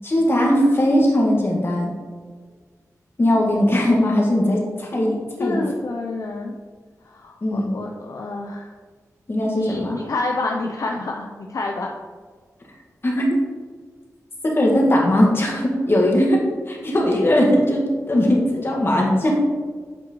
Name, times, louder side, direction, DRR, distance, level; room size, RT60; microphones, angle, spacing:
voice 1, 0.0-1.9 3.2-5.6 7.4-7.7 9.3-10.0 13.0-13.3 14.4-19.4, left 1 dB, 40° left, -2 dB, 1.7 m, -19 dB
voice 2, 5.4-6.6 7.1-8.7 9.5-11.9, left 2 dB, 65° left, 0 dB, 0.6 m, -28 dB
7.8 x 5.4 x 3.1 m, 1.5 s
wide cardioid pair, 90°, 6 cm